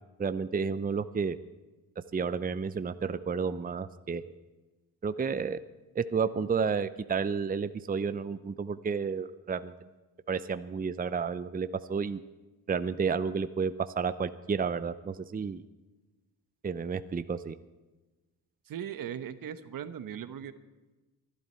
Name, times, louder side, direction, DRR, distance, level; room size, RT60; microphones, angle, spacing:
voice 1, 0.2-1.4 2.1-4.2 5.0-5.6 5.9-9.7 10.3-12.2 12.7-15.6 16.6-17.6, right 5 dB, 25° right, 13 dB, 0.6 m, -31 dB
voice 2, 18.7-20.5, right 9 dB, 65° right, 12 dB, 1.1 m, -38 dB
24.0 x 11.5 x 4.4 m, 1.2 s
cardioid pair, 80°, 36 cm